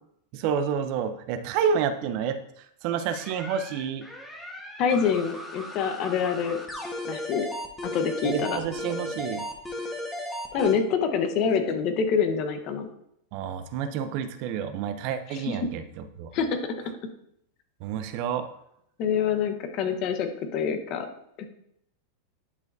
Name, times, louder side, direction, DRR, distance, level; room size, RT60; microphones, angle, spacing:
voice 1, 0.3-2.4 2.8-4.1 8.2-9.5 13.3-16.3 17.8-18.5, right 7 dB, 55° right, 10 dB, 0.6 m, -29 dB
sound 1, 3.1-10.8, left 1 dB, 10° left, 1.3 m, -36 dB
voice 2, 4.8-6.6 7.1-7.5 7.8-8.6 10.5-12.9 15.3-15.6 16.3-16.7 19.0-21.1 21.4-21.5, left 6 dB, 50° left, 7 dB, 1.1 m, -26 dB
10.5 x 4.7 x 2.7 m, 0.75 s
hypercardioid pair, 115°, 0 cm